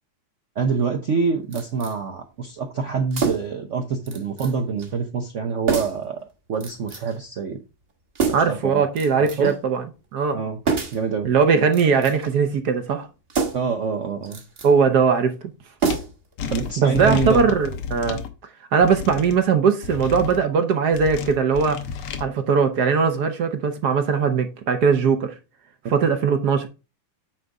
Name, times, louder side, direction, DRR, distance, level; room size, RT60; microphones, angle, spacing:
voice 1, 0.6-6.2 6.5-7.6 8.5-8.8 9.2-9.5 10.3-10.6 10.9-11.3 13.5-14.4 16.5-17.5, right 5 dB, 80° right, 0.6 m, -26 dB
sound 1, 1.5-2.0 3.1-3.6 4.1-4.5 4.8-4.9 5.7-6.1 6.6-7.2 8.2-8.6 9.0-9.6 10.7-11.1 11.7-12.3 13.3-13.8 14.2-14.7 15.8-16.3 16.6-16.7, right 5 dB, 35° right, 1.1 m, -27 dB
voice 2, 8.3-9.9 10.1-10.4 11.2-13.1 14.6-15.3 16.8-18.2 18.7-21.8 22.2-25.3 25.9-26.7, right 6 dB, 60° right, 1.2 m, -20 dB
sound 2, 15.9-16.0 16.4-18.3 18.8-19.4 19.8-20.4 20.9-22.2, left 5 dB, 90° left, 1.9 m, -30 dB
9.0 x 3.9 x 4.7 m
omnidirectional pair, 2.3 m